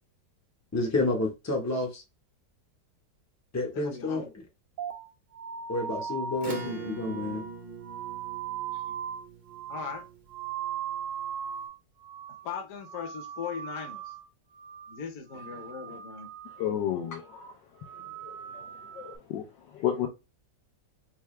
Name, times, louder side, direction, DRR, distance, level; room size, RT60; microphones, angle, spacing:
voice 1, 0.7-2.0 3.5-4.3 5.7-7.5, left 2 dB, 20° left, 0.4 m, -29 dB
voice 2, 3.7-4.3 8.7-8.8 9.7-10.0 12.4-14.1 14.9-16.3, left 7 dB, 55° left, 1.1 m, -39 dB
sound 1, 4.8-11.8 12.0-12.5 12.8-14.3 14.5-15.0 15.3-16.8 17.1-17.5 17.8-19.2, right 8 dB, 60° right, 0.9 m, -39 dB
Acoustic guitar / Strum, 6.4-11.3, right 3 dB, 40° right, 0.6 m, -42 dB
voice 3, 16.6-17.5 18.5-18.6 18.9-19.5 19.7-20.1, left 10 dB, 85° left, 1.4 m, -31 dB
4.6 x 2.3 x 3.1 m
omnidirectional pair, 1.9 m